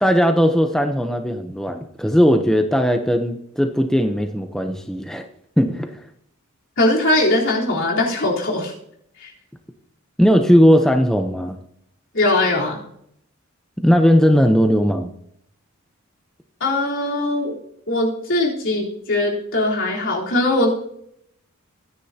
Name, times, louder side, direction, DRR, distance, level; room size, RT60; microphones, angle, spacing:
voice 1, 0.0-5.3 5.6-6.0 10.2-11.6 13.8-15.1, equal, ahead, 4 dB, 0.7 m, -17 dB
voice 2, 6.8-8.7 9.2-9.3 12.1-12.8 16.6-17.6 17.9-20.7, left 2 dB, 60° left, -3 dB, 3.7 m, -20 dB
23.0 x 10.0 x 2.8 m, 0.72 s
head